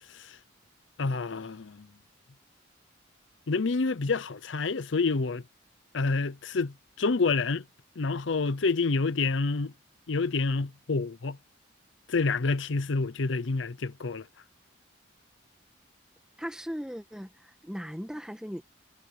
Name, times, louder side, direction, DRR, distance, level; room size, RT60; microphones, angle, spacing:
voice 1, 1.0-1.9 3.5-5.4 5.9-7.6 8.0-9.7 10.1-11.4 12.1-14.3, left 4 dB, 70° left, 0.7 m, -28 dB
voice 2, 16.4-18.6, equal, 5° right, 1.9 m, -38 dB
head